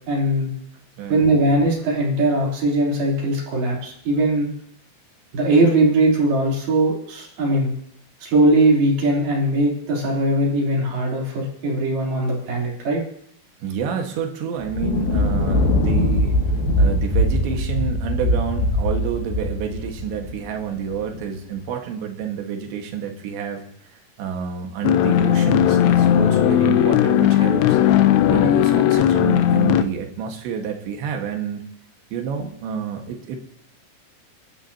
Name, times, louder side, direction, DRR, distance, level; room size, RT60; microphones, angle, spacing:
voice 1, 0.1-0.5 1.1-4.5 5.3-7.7 8.2-13.0, right 2 dB, 65° right, -3 dB, 5.3 m, -20 dB
voice 2, 1.0-1.3 13.6-27.8 28.3-31.7 32.1-33.4, right 7 dB, 90° right, 3 dB, 3.9 m, -29 dB
Thunder, 14.6-21.2, left 1 dB, 60° left, 3.8 m, -21 dB
sound 1, 24.8-29.8, left 10 dB, 80° left, 2.8 m, -17 dB
29.5 x 12.5 x 2.9 m, 0.70 s
omnidirectional pair, 4.9 m